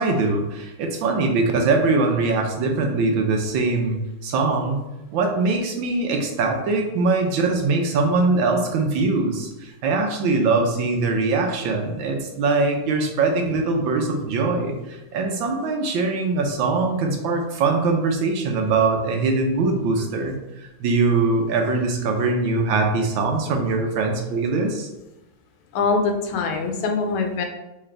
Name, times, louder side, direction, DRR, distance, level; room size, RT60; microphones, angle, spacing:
voice 1, 0.0-4.8 5.1-24.9, right 3 dB, 75° right, 3 dB, 1.4 m, -22 dB
voice 2, 25.7-27.4, left 4 dB, 85° left, 3 dB, 1.6 m, -23 dB
4.0 x 3.7 x 3.3 m, 0.99 s
omnidirectional pair, 2.2 m